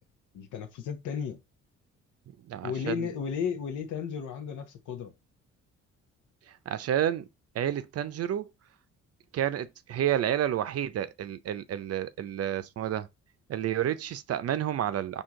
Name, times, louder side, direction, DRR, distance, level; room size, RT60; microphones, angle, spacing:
voice 1, 0.3-1.4 2.6-5.1, left 7 dB, 85° left, 1.1 m, -34 dB
voice 2, 2.4-3.1 6.7-7.3 7.5-8.5 9.3-13.1 13.5-15.2, right 10 dB, 55° right, 0.6 m, -30 dB
4.5 x 2.9 x 3.7 m
cardioid pair, 90°, 30 cm